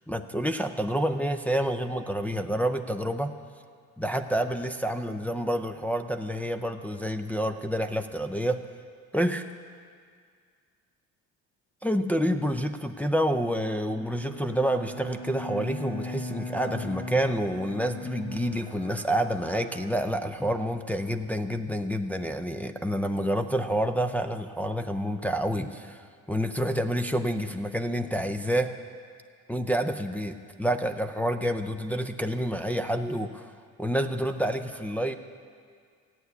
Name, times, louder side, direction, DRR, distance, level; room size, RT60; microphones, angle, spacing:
voice 1, 0.0-3.3 4.0-8.6 9.1-9.5 11.8-28.8 29.5-33.5 33.8-35.2, equal, 5° left, 5 dB, 0.4 m, -28 dB
Bowed string instrument, 13.9-20.5, left 1 dB, 90° left, 3.3 m, -39 dB
15.5 x 9.6 x 8.1 m, 2.1 s
cardioid pair, 135°, 32 cm